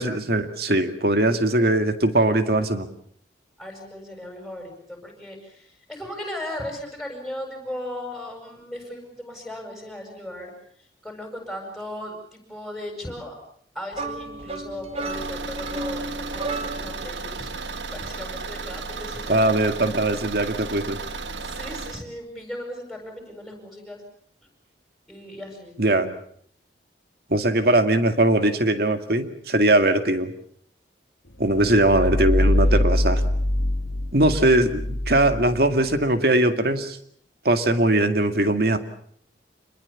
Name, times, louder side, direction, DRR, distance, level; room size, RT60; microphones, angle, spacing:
voice 1, 0.0-2.9 19.3-21.0 25.8-26.1 27.3-30.3 31.4-33.2 34.1-37.0 37.4-38.8, right 1 dB, 55° right, 8 dB, 2.2 m, -20 dB
voice 2, 3.6-10.5 10.8-13.4 13.7-19.5 21.4-24.0 25.1-25.8 31.4-31.9 32.2-32.4, left 1 dB, ahead, 2 dB, 7.7 m, -37 dB
sound 1, 13.9-17.1, right 2 dB, 35° right, 1.9 m, -33 dB
Car / Engine, 15.0-22.0, right 4 dB, 80° right, 1.5 m, -34 dB
sound 2, 31.4-36.1, left 1 dB, 85° left, 2.0 m, -23 dB
27.0 x 21.5 x 7.2 m, 0.64 s
head